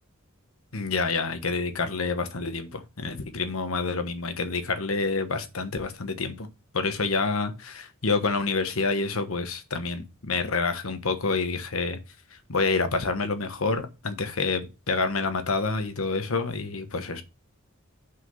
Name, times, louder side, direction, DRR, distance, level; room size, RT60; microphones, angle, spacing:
voice 1, 0.7-6.5 6.7-12.0 12.5-17.2, left 4 dB, 80° left, 1.2 m, -28 dB
5.8 x 5.8 x 5.7 m
head